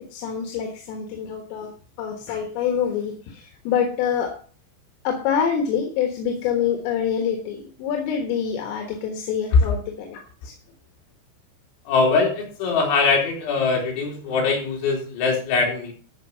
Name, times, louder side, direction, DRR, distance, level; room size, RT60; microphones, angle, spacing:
voice 1, 0.1-1.7 2.0-4.3 5.1-10.5, left 8 dB, 85° left, 3 dB, 4.2 m, -26 dB
voice 2, 11.9-15.9, left 4 dB, 70° left, 0 dB, 5.5 m, -21 dB
14.0 x 5.5 x 6.2 m, 0.40 s
omnidirectional pair, 5.7 m